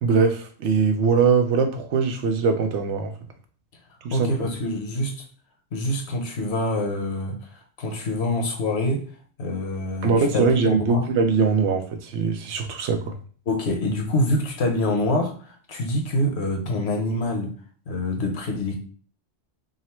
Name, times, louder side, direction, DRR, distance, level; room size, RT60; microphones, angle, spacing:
voice 1, 0.0-3.1 4.0-4.5 10.0-13.2, right 5 dB, 85° right, 1.0 m, -22 dB
voice 2, 4.1-5.2 5.7-9.0 9.4-11.0 13.5-17.5 17.9-18.8, left 1 dB, 75° left, 1.1 m, -26 dB
3.7 x 2.0 x 4.3 m
omnidirectional pair, 1.1 m